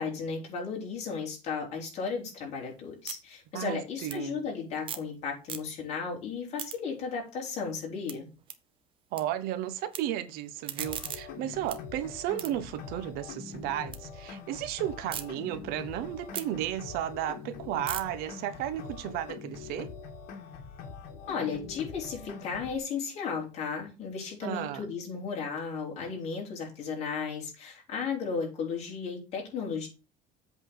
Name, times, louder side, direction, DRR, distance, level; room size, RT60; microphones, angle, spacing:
voice 1, 0.0-8.3 21.3-29.9, left 5 dB, 45° left, 3.7 m, -35 dB
sound 1, 2.2-5.1 5.4-6.0 6.3-9.2 9.5-10.0 10.4-14.0 14.4-15.2 15.7-19.8, right 8 dB, 35° right, 0.9 m, -43 dB
voice 2, 3.5-4.4 9.1-19.9 24.4-24.8, right 12 dB, 70° right, 1.0 m, -34 dB
sound 2, 10.8-22.8, left 6 dB, 75° left, 1.9 m, -44 dB
8.0 x 4.1 x 6.9 m
cardioid pair, 160°, 16 cm